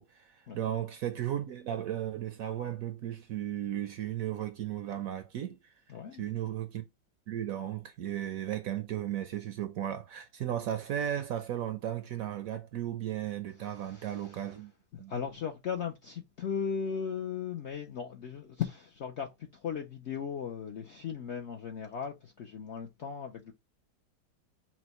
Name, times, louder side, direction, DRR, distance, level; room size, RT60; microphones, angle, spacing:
voice 1, 0.0-5.7 6.2-6.8 7.3-14.7 15.0-15.1, right 11 dB, 70° right, 0.8 m, -35 dB
voice 2, 5.9-6.3 13.6-14.5 14.9-23.5, left 7 dB, 65° left, 0.7 m, -37 dB
6.0 x 2.1 x 2.9 m
omnidirectional pair, 1.8 m